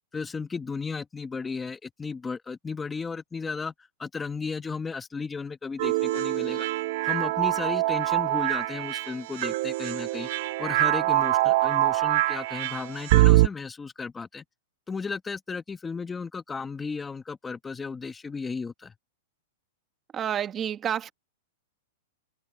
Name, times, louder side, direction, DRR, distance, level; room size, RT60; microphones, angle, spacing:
voice 1, 0.1-3.7 4.0-6.7 7.0-10.3 10.6-14.4 14.9-18.9, left 5 dB, 10° left, 1.1 m, -34 dB
sound 1, 5.8-13.5, right 17 dB, 45° right, 0.8 m, -24 dB
voice 2, 20.1-21.1, right 9 dB, 20° right, 1.4 m, -29 dB
supercardioid pair, 170°, 0 cm